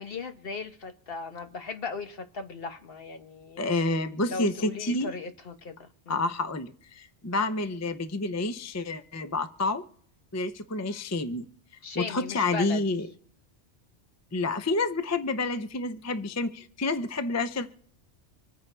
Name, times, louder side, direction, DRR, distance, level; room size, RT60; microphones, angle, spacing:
voice 1, 0.0-3.7 4.3-6.2 11.8-12.8, left 4 dB, 55° left, 7 dB, 1.2 m, -37 dB
voice 2, 3.6-5.1 6.1-9.8 10.3-11.5 11.9-13.1 14.3-17.7, left 2 dB, 20° left, 10 dB, 0.5 m, -29 dB
26.0 x 9.4 x 3.3 m, 0.63 s
omnidirectional pair, 1.2 m